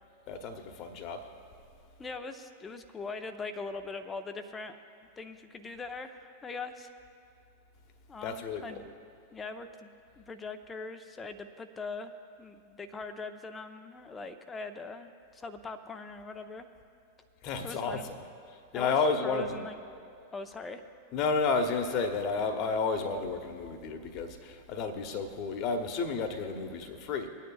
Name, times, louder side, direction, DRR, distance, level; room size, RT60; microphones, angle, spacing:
voice 1, 0.3-1.3 8.2-8.8 17.4-18.1 18.7-19.6 21.1-27.3, left 4 dB, 40° left, 7 dB, 1.1 m, -31 dB
voice 2, 2.0-4.8 5.2-6.9 8.1-8.9 9.3-9.9 10.2-12.1 12.4-16.7 17.6-18.1 18.7-19.0 19.2-19.8 20.3-20.8, left 4 dB, 15° left, 8 dB, 0.7 m, -41 dB
24.5 x 9.3 x 2.4 m, 2.5 s
figure-of-eight pair, 90°, 0 cm